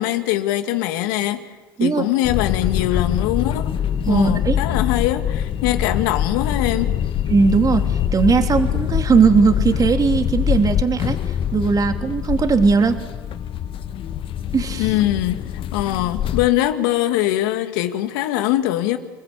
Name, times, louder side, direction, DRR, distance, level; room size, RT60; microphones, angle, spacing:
voice 1, 0.0-1.4 1.8-3.7 4.1-7.0 14.8-15.4 15.7-19.0, left 14 dB, 75° left, 7 dB, 2.2 m, -22 dB
sound 1, 2.2-16.5, left 9 dB, 50° left, 1.5 m, -24 dB
voice 2, 4.0-4.6 7.3-13.0 14.5-14.9, right 5 dB, 35° right, 5 dB, 3.1 m, -18 dB
30.0 x 20.5 x 8.5 m, 1.3 s
hypercardioid pair, 70°, 11 cm